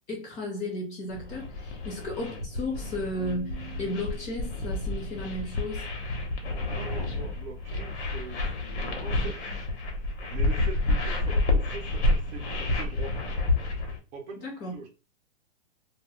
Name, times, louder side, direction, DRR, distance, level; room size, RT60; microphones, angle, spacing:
voice 1, 0.1-5.8 14.4-14.7, left 1 dB, 20° left, 0.7 m, -34 dB
sound 1, 1.1-14.0, left 2 dB, 70° left, 1.0 m, -29 dB
Keyboard (musical), 3.1-5.0, right 11 dB, 90° right, 0.7 m, -47 dB
voice 2, 6.7-9.5 10.3-13.2 14.1-14.4 14.7-14.9, right 4 dB, 40° right, 0.7 m, -42 dB
2.3 x 2.1 x 3.4 m
hypercardioid pair, 155°, 35 cm